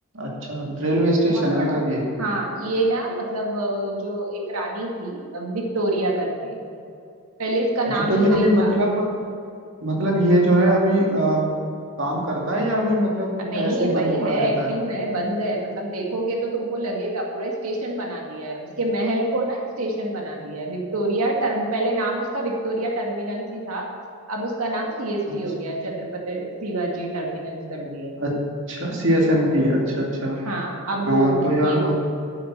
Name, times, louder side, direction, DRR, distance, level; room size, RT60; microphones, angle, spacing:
voice 1, 0.1-2.1 8.1-9.1 9.8-11.6 12.0-14.7 25.3-25.4 28.2-30.4 31.1-31.9, right 1 dB, 55° right, -2 dB, 2.5 m, -21 dB
voice 2, 1.4-1.8 2.2-6.6 7.4-8.7 13.4-23.9 24.3-28.2 30.5-31.4 31.6-31.8, right 1 dB, 80° right, -1 dB, 2.1 m, -26 dB
11.0 x 8.9 x 6.2 m, 2.5 s
head